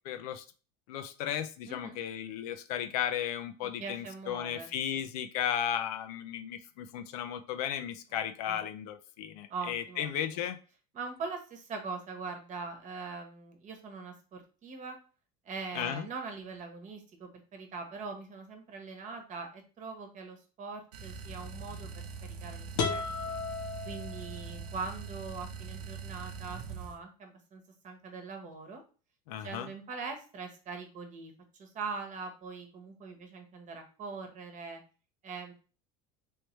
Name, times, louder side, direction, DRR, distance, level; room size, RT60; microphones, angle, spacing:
voice 1, 0.0-0.4 0.9-10.6 15.7-16.1 29.3-29.7, left 10 dB, 75° left, 8 dB, 0.5 m, -35 dB
voice 2, 1.7-2.0 3.6-5.0 8.1-8.6 9.5-10.4 10.9-15.0 15.4-23.3 23.9-28.8 29.4-31.3 31.6-34.8 35.2-35.5, right 4 dB, 40° right, 4 dB, 1.1 m, -42 dB
sound 1, 20.9-27.0, right 5 dB, 90° right, 0.6 m, -43 dB
sound 2, 22.8-24.7, left 5 dB, 60° left, 0.9 m, -35 dB
3.2 x 3.2 x 3.1 m, 0.36 s
supercardioid pair, 100°, 20 cm